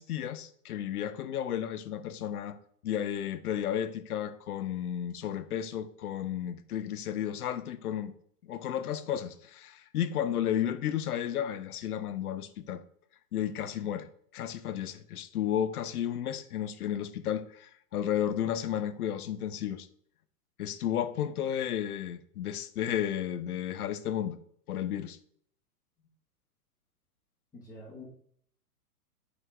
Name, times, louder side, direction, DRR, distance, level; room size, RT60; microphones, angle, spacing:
voice 1, 0.0-2.6 2.8-8.1 8.5-12.8 13.3-14.1 14.3-19.9 20.6-24.4 24.7-25.2, left 10 dB, 70° left, 0.8 m, -33 dB
voice 2, 27.5-28.0, left 2 dB, 5° left, 1.2 m, -46 dB
6.5 x 4.9 x 3.3 m
hypercardioid pair, 165°, 47 cm